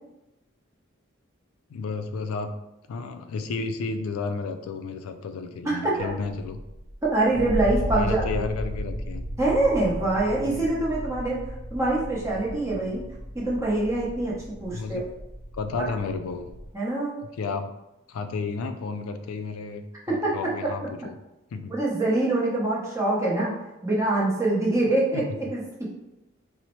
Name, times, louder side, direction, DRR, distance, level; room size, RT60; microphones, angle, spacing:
voice 1, 1.7-2.5 2.9-6.6 7.9-9.2 10.4-10.7 14.7-15.0 15.5-16.5 17.4-17.7 18.1-21.1 21.5-21.7 25.1-25.2, left 4 dB, 90° left, 7 dB, 0.3 m, -32 dB
voice 2, 5.6-6.1 7.0-8.2 9.4-13.0 13.3-14.3 14.6-15.0 16.7-17.1 20.2-20.7 21.7-23.5 23.8-25.2 25.5-25.9, right 2 dB, 15° right, -5 dB, 0.7 m, -24 dB
sound 1, 6.5-16.7, equal, 80° right, 0.7 m, -35 dB
4.0 x 2.0 x 3.0 m, 0.92 s
head